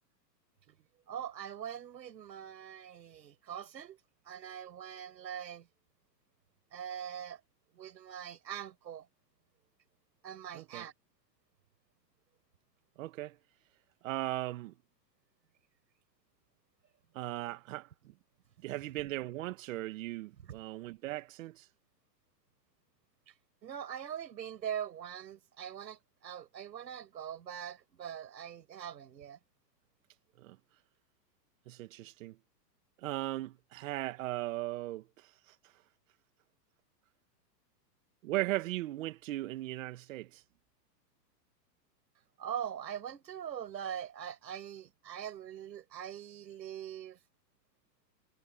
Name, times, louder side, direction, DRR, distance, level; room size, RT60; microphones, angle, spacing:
voice 1, 1.1-4.0 4.3-5.7 6.7-7.4 7.7-9.1 10.2-10.9 20.4-20.6 23.6-29.4 42.4-47.2, right 9 dB, 85° right, 7.6 m, -42 dB
voice 2, 10.5-10.9 13.0-13.4 14.0-14.7 17.1-18.1 18.6-21.6 30.4-30.6 31.7-32.4 33.0-35.0 38.2-40.4, right 17 dB, 50° right, 2.2 m, -37 dB
hypercardioid pair, 155°, 50 cm